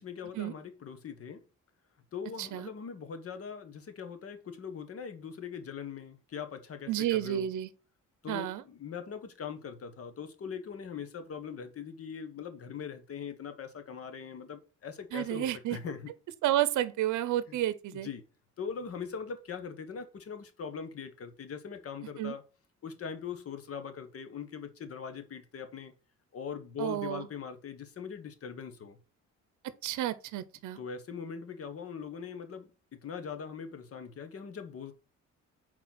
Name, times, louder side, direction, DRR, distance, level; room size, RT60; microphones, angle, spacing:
voice 1, 0.0-1.4 2.1-7.5 8.2-16.1 17.5-17.6 17.9-18.2 18.6-22.4 22.8-25.9 26.3-29.0 30.8-32.7 33.0-34.9, left 6 dB, 50° left, 1.2 m, -41 dB
voice 2, 2.4-2.7 6.9-7.7 8.3-8.6 15.1-15.8 16.4-18.1 22.2-22.4 26.8-27.3 29.8-30.8, right 13 dB, 80° right, 0.7 m, -31 dB
4.5 x 4.3 x 5.8 m
cardioid pair, 90°, 30 cm